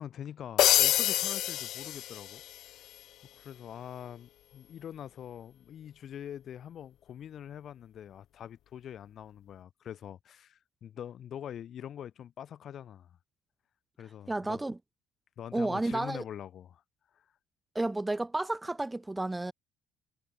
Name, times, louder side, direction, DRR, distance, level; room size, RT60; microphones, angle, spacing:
voice 1, 0.0-2.4 3.3-13.2 14.0-14.6 15.4-16.8 17.1-17.2, left 10 dB, 50° left, 5.8 m, -44 dB
sound 1, 0.6-2.6, left 13 dB, 65° left, 0.8 m, -27 dB
voice 2, 14.3-14.8 15.5-16.2 17.8-19.5, right 2 dB, 10° right, 1.9 m, -31 dB
cardioid pair, 125°, 0 cm